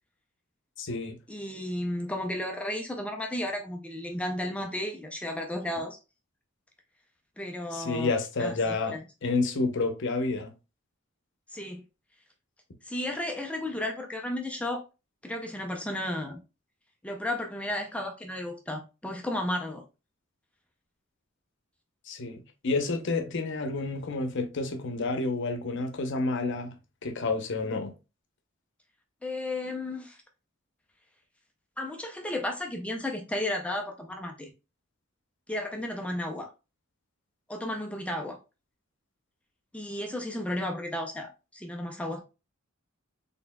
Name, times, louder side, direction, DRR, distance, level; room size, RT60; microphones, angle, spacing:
voice 1, 0.8-1.2 7.7-9.0 9.2-10.5 22.1-26.8 27.0-27.9, left 3 dB, 65° left, 0.7 m, -29 dB
voice 2, 1.3-6.0 7.4-8.1 8.4-9.0 11.5-11.8 12.8-14.9 15.2-16.4 17.0-19.8 29.2-30.2 31.8-34.5 35.5-36.5 37.5-38.4 39.7-42.2, left 1 dB, 5° left, 0.5 m, -33 dB
4.2 x 3.4 x 2.2 m
head